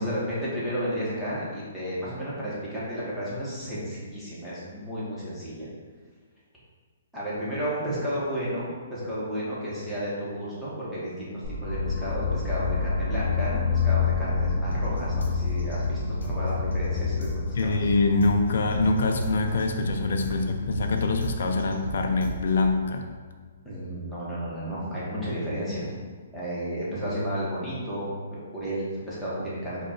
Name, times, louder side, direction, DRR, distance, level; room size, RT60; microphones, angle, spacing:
voice 1, 0.0-5.7 7.1-17.9 23.6-25.9 26.3-29.9, equal, ahead, -11 dB, 1.1 m, -32 dB
sound 1, 11.4-23.4, left 5 dB, 40° left, 1.5 m, -30 dB
sound 2, 14.7-22.7, left 1 dB, 85° left, 1.0 m, -34 dB
voice 2, 17.6-23.0, left 3 dB, 65° left, 4 dB, 0.4 m, -24 dB
4.9 x 2.4 x 4.3 m, 1.5 s
hypercardioid pair, 170°, 0 cm